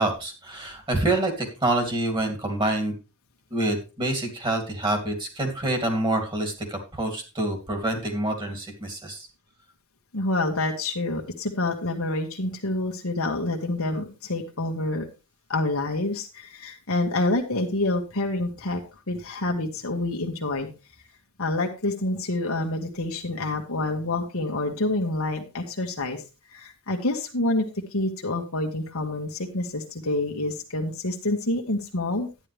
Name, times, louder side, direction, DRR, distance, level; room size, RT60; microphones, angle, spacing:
voice 1, 0.0-2.9 3.5-9.3, right 2 dB, 20° right, 4 dB, 2.9 m, -27 dB
voice 2, 10.1-15.1 15.5-18.8 19.1-20.7 21.4-26.2 26.5-32.3, left 2 dB, 65° left, 1 dB, 1.6 m, -27 dB
11.5 x 9.8 x 3.5 m, 0.30 s
head